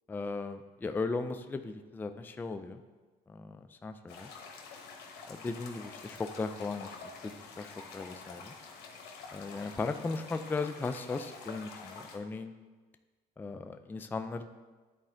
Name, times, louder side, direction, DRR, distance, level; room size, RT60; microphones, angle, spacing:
voice 1, 0.1-2.8 3.3-4.3 5.3-7.0 7.2-7.3 7.6-8.5 9.3-12.5 13.4-14.4, left 3 dB, 10° left, 8 dB, 0.3 m, -37 dB
sound 1, 4.1-12.2, left 4 dB, 75° left, 1.2 m, -48 dB
10.0 x 4.2 x 3.8 m, 1.3 s
cardioid pair, 110°, 17 cm